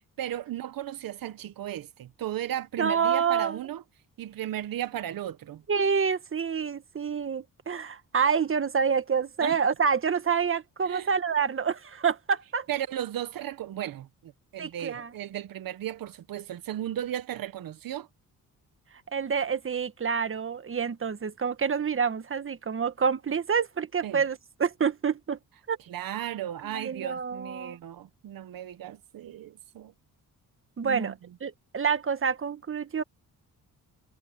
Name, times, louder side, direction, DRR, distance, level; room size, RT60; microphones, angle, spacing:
voice 1, 0.2-3.8 4.2-5.6 9.4-9.6 10.8-11.1 12.7-18.1 24.0-24.2 25.9-29.9 30.8-31.1, right 11 dB, 75° right, 1.1 m, -35 dB
voice 2, 2.8-3.6 5.7-12.7 14.6-15.1 19.1-25.4 25.7-25.8 26.6-27.8 30.8-31.1 31.4-33.0, right 6 dB, 35° right, 1.5 m, -27 dB
cardioid pair, 80°, 34 cm